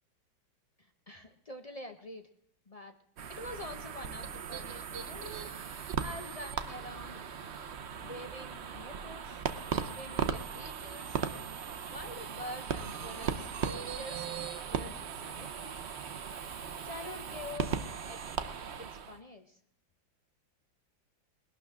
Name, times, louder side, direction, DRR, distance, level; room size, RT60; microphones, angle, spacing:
voice 1, 0.8-2.3 2.7-3.0 3.3-5.4 6.0-7.2 8.0-9.4 9.9-11.2 11.9-13.5 13.9-14.3 14.6-15.7 16.8-18.2 18.8-19.6, left 1 dB, 50° left, 6 dB, 0.4 m, -46 dB
sound 1, 3.2-19.2, right 7 dB, 55° right, 0.8 m, -38 dB
20.5 x 12.0 x 3.6 m, 0.66 s
omnidirectional pair, 2.2 m